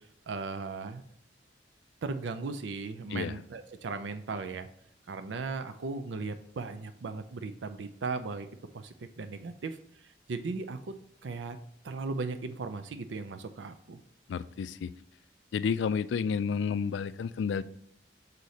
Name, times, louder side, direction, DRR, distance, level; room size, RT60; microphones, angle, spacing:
voice 1, 0.3-1.0 2.0-4.7 5.1-8.5 8.7-10.9 11.2-11.6 11.8-14.0, right 4 dB, 80° right, 9 dB, 0.5 m, -37 dB
voice 2, 14.3-14.9 15.5-17.6, left 6 dB, 75° left, 15 dB, 0.3 m, -31 dB
6.5 x 4.1 x 4.1 m, 0.70 s
head